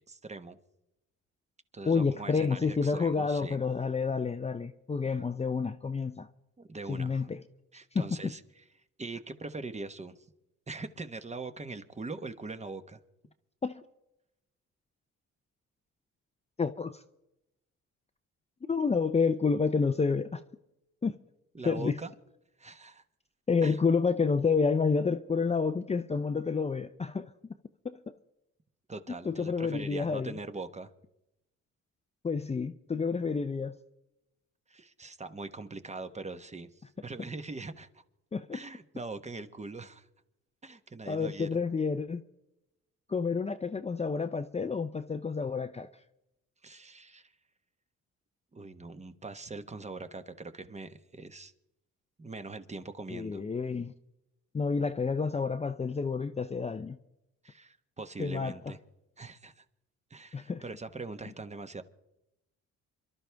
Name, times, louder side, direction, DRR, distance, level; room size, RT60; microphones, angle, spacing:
voice 1, 0.1-0.6 1.7-3.6 6.6-7.3 7.7-8.4 9.0-10.2 10.7-13.0 21.5-22.1 22.6-23.0 23.6-23.8 28.9-30.9 34.7-36.7 37.0-38.0 38.5-40.1 40.6-41.6 46.6-47.3 48.5-51.5 52.2-53.4 57.4-58.8 59.2-59.6 60.1-61.8, right 3 dB, 20° right, 1.2 m, -42 dB
voice 2, 1.8-6.3 6.9-7.4 7.9-8.3 13.6-13.8 16.6-17.0 18.7-20.4 21.0-21.2 21.6-22.0 23.5-27.3 27.8-28.2 29.2-30.3 32.2-33.7 38.3-38.6 41.1-42.2 43.1-45.9 53.1-53.9 54.5-57.0 58.2-58.6 60.3-60.6, left 5 dB, 20° left, 0.6 m, -29 dB
27.5 x 12.0 x 3.5 m
cardioid pair, 90°, 30 cm